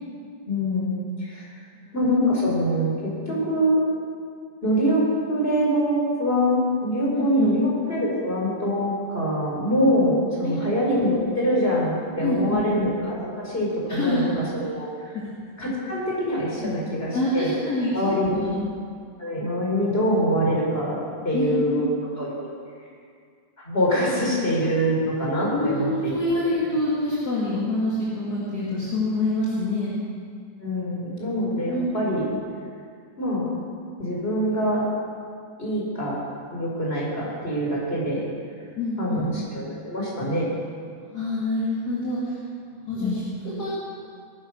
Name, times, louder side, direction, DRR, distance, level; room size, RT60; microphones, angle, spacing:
voice 1, 0.4-1.5 1.9-3.8 4.6-5.0 5.3-15.2 15.6-17.5 17.9-18.5 19.2-21.0 21.2-21.9 22.2-22.5 23.6-26.1 30.6-32.3 33.2-33.5 34.0-34.8 35.6-36.2 36.5-38.2 39.0-40.5 43.0-43.2, equal, 30° left, -4 dB, 4.8 m, -24 dB
voice 2, 7.1-7.5 10.4-10.6 12.2-12.6 13.9-14.4 15.6-15.7 16.6-16.7 17.1-17.9 18.3-18.6 21.3-21.9 25.5-29.9 31.5-32.1 38.8-39.3 41.0-42.4 42.7-43.7, left 1 dB, 50° left, -8 dB, 3.0 m, -26 dB
20.5 x 10.5 x 6.3 m, 2.2 s
omnidirectional pair, 2.2 m